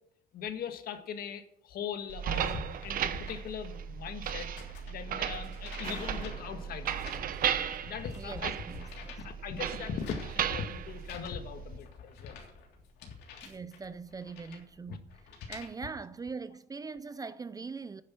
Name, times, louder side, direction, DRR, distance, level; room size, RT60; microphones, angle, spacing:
voice 1, 0.3-4.5 4.9-7.3 7.8-8.6 9.2-12.4 13.0-13.1 14.9-15.0, left 7 dB, 65° left, 1.6 m, -40 dB
sound 1, 1.9-15.7, left 5 dB, 80° left, 3.3 m, -52 dB
sound 2, 2.1-11.8, right 9 dB, 55° right, 1.0 m, -35 dB
sound 3, 5.8-8.2, left 3 dB, 35° left, 3.4 m, -49 dB
voice 2, 8.2-9.2 13.4-15.2 15.5-18.0, right 4 dB, 20° right, 0.5 m, -42 dB
9.9 x 9.7 x 6.1 m
cardioid pair, 110°, 17 cm